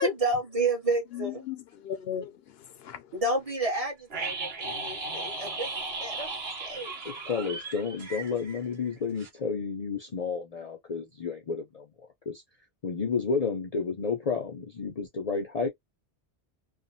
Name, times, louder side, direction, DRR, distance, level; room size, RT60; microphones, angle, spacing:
voice 1, 0.0-1.4 3.1-5.7 6.0-6.3 6.6-7.5, right 2 dB, 35° right, 1.2 m, -30 dB
voice 2, 1.1-3.1, left 10 dB, 75° left, 0.8 m, -35 dB
sound 1, 4.1-8.9 9.2-9.3, right 3 dB, 70° right, 1.3 m, -36 dB
voice 3, 7.0-11.9 12.3-12.4 12.8-15.7, left 5 dB, 45° left, 0.6 m, -31 dB
2.9 x 2.2 x 2.7 m
omnidirectional pair, 1.1 m